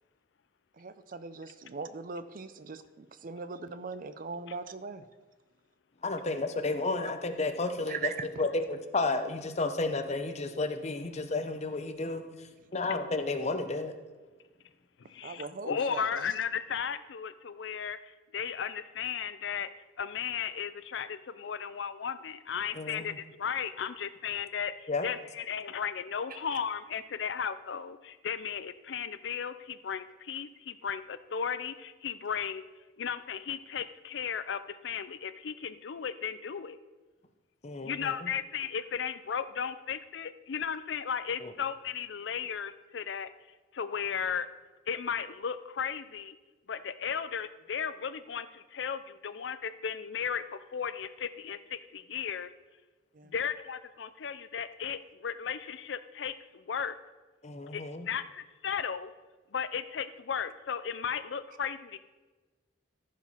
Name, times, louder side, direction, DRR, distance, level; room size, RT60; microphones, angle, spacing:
voice 1, 0.8-5.0 7.9-8.4 15.2-16.4 26.3-26.4 53.1-53.3, right 5 dB, 45° right, 13 dB, 0.5 m, -40 dB
voice 2, 6.0-8.1 8.4-13.9 22.7-23.2 24.9-25.1 37.6-38.3 41.4-41.5 57.4-58.1, left 3 dB, 35° left, 7 dB, 0.8 m, -32 dB
voice 3, 15.0-19.7 20.0-32.6 33.0-36.8 37.8-43.3 43.7-44.5 44.9-46.4 46.7-52.5 53.2-57.0 57.7-59.1 59.5-62.0, left 7 dB, 65° left, 13 dB, 0.5 m, -35 dB
14.0 x 5.0 x 5.7 m, 1.2 s
head